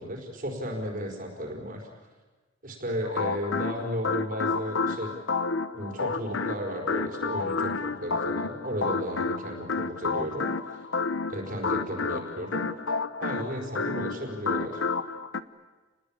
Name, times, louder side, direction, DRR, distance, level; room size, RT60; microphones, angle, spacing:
voice 1, 0.0-1.9 2.6-5.1 5.7-10.9 11.3-12.7 13.2-14.8, equal, 45° right, 1 dB, 4.8 m, -34 dB
sound 1, 3.0-15.4, left 4 dB, 80° left, 0.9 m, -30 dB
30.0 x 20.5 x 8.9 m, 1.3 s
head